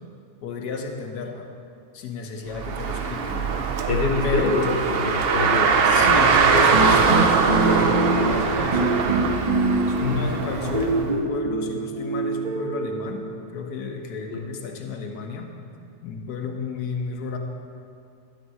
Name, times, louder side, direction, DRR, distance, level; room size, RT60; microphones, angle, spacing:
voice 1, 0.4-1.5 1.9-3.5 4.2-4.8 5.9-9.1 9.9-15.5 16.0-17.4, left 4 dB, 75° left, 3 dB, 1.5 m, -32 dB
Car, 2.5-11.1, right 5 dB, 60° right, 0.6 m, -21 dB
voice 2, 3.9-5.8 10.0-10.3 14.3-14.5, left 3 dB, 45° left, 1 dB, 1.2 m, -25 dB
sound 1, 6.7-8.5 8.7-10.3 10.7-13.4, right 2 dB, 30° right, 1.2 m, -24 dB
12.5 x 4.6 x 7.8 m, 2.5 s
omnidirectional pair, 1.7 m